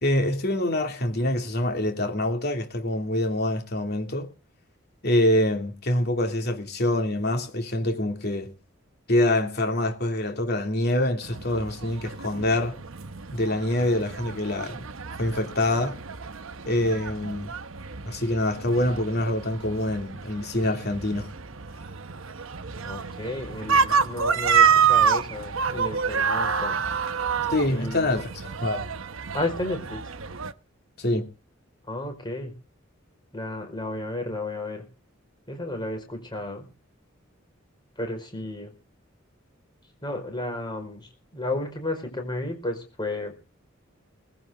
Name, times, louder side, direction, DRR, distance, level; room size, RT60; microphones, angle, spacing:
voice 1, 0.0-4.3 5.0-8.5 9.1-12.8 13.3-14.8 15.2-16.0 16.6-17.6 18.0-21.3 27.5-28.3 28.6-28.9 31.0-31.3, left 1 dB, 55° left, 2.8 m, -25 dB
sound 1, 11.2-30.5, right 6 dB, 85° right, 1.0 m, -28 dB
voice 2, 22.8-26.8 27.7-28.3 29.3-30.1 31.9-32.5 33.3-34.8 35.5-36.7 38.0-38.7 40.0-43.3, left 2 dB, 25° left, 5.2 m, -32 dB
19.5 x 16.0 x 3.8 m
head